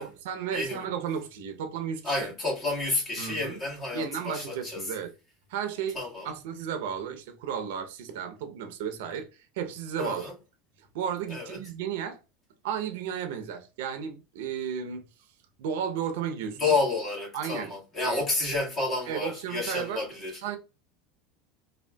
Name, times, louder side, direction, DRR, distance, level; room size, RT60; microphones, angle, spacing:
voice 1, 0.0-2.3 3.2-3.6 3.9-5.1 5.5-6.0 6.2-9.3 9.5-10.3 10.9-12.2 12.6-15.0 15.6-16.7 17.3-17.7 18.0-18.2 19.1-20.0 20.4-20.6, right 8 dB, 75° right, 0.6 m, -33 dB
voice 2, 0.5-0.9 2.0-4.9 5.9-6.3 10.0-10.3 11.3-11.6 16.6-20.4, left 3 dB, 35° left, 1.7 m, -30 dB
3.5 x 2.3 x 2.2 m
supercardioid pair, 115°, 0 cm